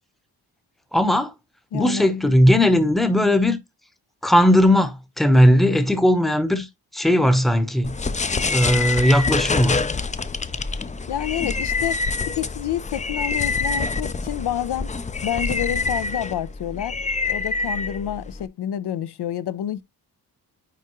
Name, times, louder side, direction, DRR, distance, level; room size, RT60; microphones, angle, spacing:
voice 1, 0.9-1.3 1.7-3.6 4.2-6.7 6.9-7.9 8.5-9.8, equal, ahead, 0.8 m, -18 dB
voice 2, 1.7-2.3 11.1-14.9 15.2-17.0 17.3-19.8, left 11 dB, 75° left, 0.6 m, -28 dB
sound 1, 7.8-18.5, left 4 dB, 20° left, 0.4 m, -26 dB
9.3 x 3.5 x 3.0 m
wide cardioid pair, 110°, 40 cm